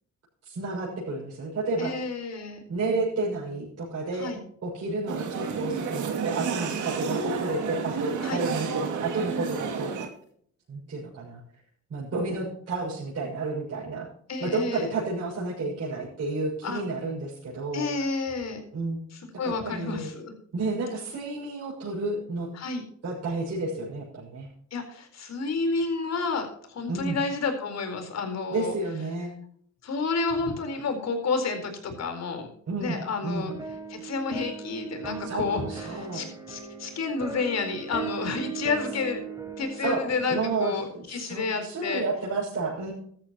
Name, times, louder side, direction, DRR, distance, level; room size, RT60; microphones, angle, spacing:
voice 1, 0.4-1.9 2.7-4.3 4.6-9.9 10.7-11.4 11.9-14.1 14.4-17.9 18.7-19.0 19.4-20.1 20.5-22.5 23.0-24.5 26.9-27.2 28.5-29.3 32.7-33.0 33.2-33.5 35.2-36.2 39.8-40.0 40.3-42.9, right 3 dB, 55° right, -5 dB, 6.6 m, -31 dB
voice 2, 1.8-2.6 4.1-4.4 8.2-8.4 14.3-14.9 16.6-16.8 17.7-18.6 19.1-20.3 22.5-22.8 24.7-28.8 29.8-32.5 32.8-33.5 33.9-39.2 39.6-42.0, left 4 dB, 60° left, 6 dB, 4.3 m, -30 dB
sound 1, 5.1-10.1, right 6 dB, 75° right, 2.7 m, -31 dB
sound 2, 33.5-40.7, right 6 dB, 10° right, 4.2 m, -38 dB
15.5 x 13.0 x 3.0 m, 0.62 s
cardioid pair, 90°, 30 cm